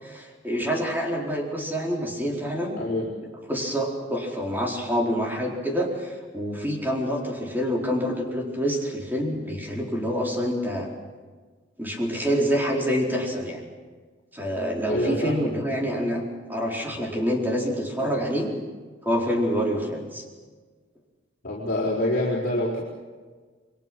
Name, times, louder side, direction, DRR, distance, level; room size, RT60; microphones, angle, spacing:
voice 1, 0.0-2.8 3.5-10.9 11.8-13.6 14.3-16.2 16.5-18.5 19.0-20.2, equal, 10° right, -1 dB, 4.3 m, -27 dB
voice 2, 2.8-3.1 14.9-15.4 21.4-22.8, left 1 dB, 50° left, -7 dB, 4.7 m, -26 dB
28.5 x 22.5 x 6.2 m, 1.4 s
head